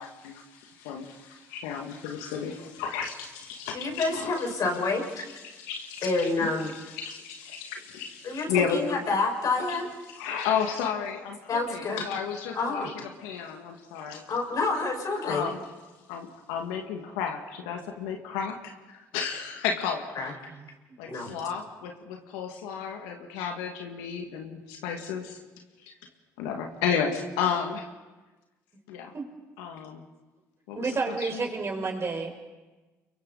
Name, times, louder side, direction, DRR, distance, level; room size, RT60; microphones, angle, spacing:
voice 1, 0.0-4.4 5.4-6.1 6.9-8.8 9.7-9.8 10.1-12.9 13.2-14.2 15.2-15.6 16.1-18.7 19.1-20.3 21.0-25.4 25.9-26.0 26.4-27.9 28.9-29.1 29.6-30.0 30.7-31.4, left 7 dB, 80° left, 3 dB, 2.1 m, -32 dB
voice 2, 3.7-5.2 6.0-6.7 8.2-9.9 11.5-12.0 12.5-12.9 14.3-15.5 20.2-20.5 21.1-21.3, left 3 dB, 55° left, 1 dB, 5.6 m, -28 dB
voice 3, 30.7-32.3, right 4 dB, 35° right, 2 dB, 5.0 m, -30 dB
29.0 x 23.0 x 4.1 m, 1.2 s
hypercardioid pair, 65°, 8 cm